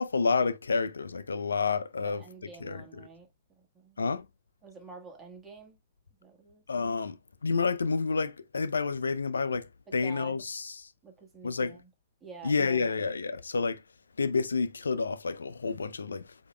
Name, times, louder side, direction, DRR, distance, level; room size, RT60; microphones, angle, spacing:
voice 1, 0.0-2.2 2.6-3.1 4.0-4.3 6.7-7.2 7.4-10.9 11.4-11.8 12.4-13.8 14.2-16.3, left 4 dB, 75° left, 0.5 m, -29 dB
voice 2, 2.0-3.3 3.6-4.0 4.6-5.8 6.2-6.6 9.9-10.4 11.0-11.9 12.2-13.0, right 5 dB, 15° right, 1.5 m, -49 dB
8.1 x 2.8 x 2.2 m
figure-of-eight pair, 110°, 0 cm